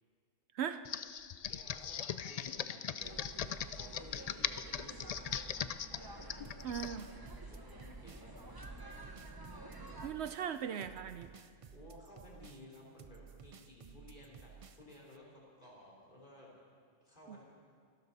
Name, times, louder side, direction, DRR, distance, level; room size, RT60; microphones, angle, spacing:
Computer keyboard, 0.8-7.0, left 8 dB, 80° left, 0.3 m, -39 dB
voice 1, 1.5-3.2 3.7-8.7 11.7-16.5 17.0-17.4, left 1 dB, 40° left, -4 dB, 3.8 m, -56 dB
sound 1, 3.0-10.1, right 2 dB, 20° right, 1.0 m, -50 dB
sound 2, 6.4-15.2, right 6 dB, 45° right, 0.4 m, -55 dB
voice 2, 6.6-7.1 10.0-11.3 17.3-17.4, right 8 dB, 70° right, 11 dB, 0.8 m, -38 dB
26.0 x 12.5 x 4.1 m, 2.1 s
omnidirectional pair, 1.2 m